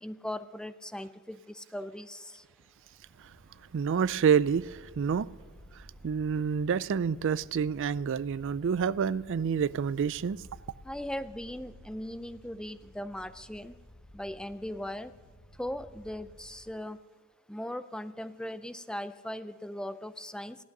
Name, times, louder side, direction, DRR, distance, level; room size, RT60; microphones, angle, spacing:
voice 1, 0.0-2.4 10.9-13.7 14.1-15.1 15.6-17.0 17.5-20.6, left 1 dB, 5° left, 0.4 m, -39 dB
sound 1, 2.4-16.7, equal, 65° left, 2.4 m, -55 dB
voice 2, 3.7-5.3 6.0-10.4, right 6 dB, 60° right, 0.4 m, -28 dB
16.0 x 12.0 x 6.6 m
head